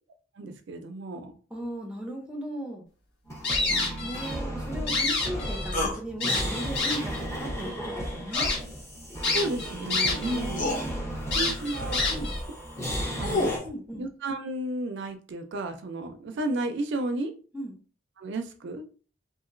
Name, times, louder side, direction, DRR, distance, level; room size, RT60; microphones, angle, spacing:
voice 1, 0.4-1.3 3.7-4.1 9.3-10.7 11.3-12.0 13.2-13.5 14.0-17.3 18.2-18.8, right 2 dB, 65° right, 7 dB, 0.4 m, -33 dB
voice 2, 1.5-2.8 4.0-8.5 10.2-11.0 12.1-12.3 13.6-14.0 17.5-17.7, equal, 5° right, 1 dB, 0.6 m, -37 dB
sound 1, 3.3-13.6, equal, 15° left, 0.9 m, -34 dB
sound 2, 3.4-4.4 4.7-5.8 6.2-7.2 7.8-7.9 8.3-8.6 9.2-10.4 10.7-10.8 11.3-12.4, left 3 dB, 65° left, 1.3 m, -28 dB
sound 3, 5.7-6.0 8.3-8.6 9.9-10.0 10.5-10.8 12.8-13.7, left 2 dB, 45° left, 0.6 m, -29 dB
2.8 x 2.6 x 2.5 m, 0.38 s
head